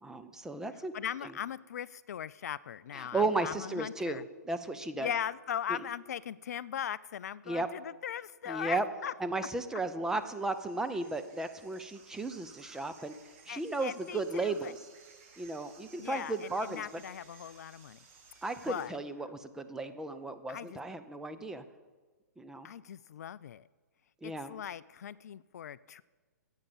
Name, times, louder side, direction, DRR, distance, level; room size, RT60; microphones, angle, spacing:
voice 1, 0.0-0.9 1.2-1.3 2.9-5.1 5.7-5.8 7.5-7.7 8.5-8.8 9.2-13.1 13.5-14.8 15.4-16.9 18.4-21.6 22.4-22.7 24.2-24.5, right 2 dB, 5° right, 9 dB, 0.6 m, -35 dB
voice 2, 0.9-4.2 5.0-9.1 13.5-14.7 16.0-18.0 18.7-18.9 20.5-20.8 22.6-23.7 24.2-26.0, left 9 dB, 60° left, 18 dB, 0.3 m, -39 dB
sound 1, 10.1-18.9, right 4 dB, 40° right, 2.3 m, -58 dB
11.5 x 8.2 x 7.4 m, 1.4 s
hypercardioid pair, 125°, 10 cm